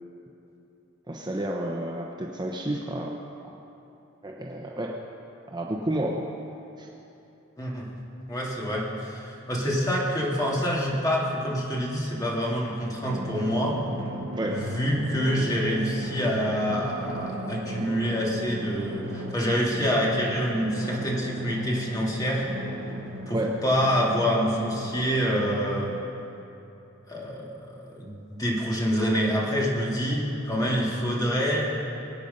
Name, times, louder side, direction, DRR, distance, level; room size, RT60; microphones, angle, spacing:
voice 1, 1.1-3.1 4.2-4.9 5.5-6.2 6.8-6.9 14.3-14.6 23.3-23.5, right 1 dB, 20° right, -1 dB, 0.9 m, -30 dB
voice 2, 7.6-7.9 8.3-13.8 14.5-22.4 23.3-25.9 27.1-31.6, equal, 20° left, -4 dB, 2.6 m, -26 dB
Drum, 13.1-26.0, right 1 dB, 65° right, 1.6 m, -36 dB
23.0 x 9.2 x 5.5 m, 2.9 s
head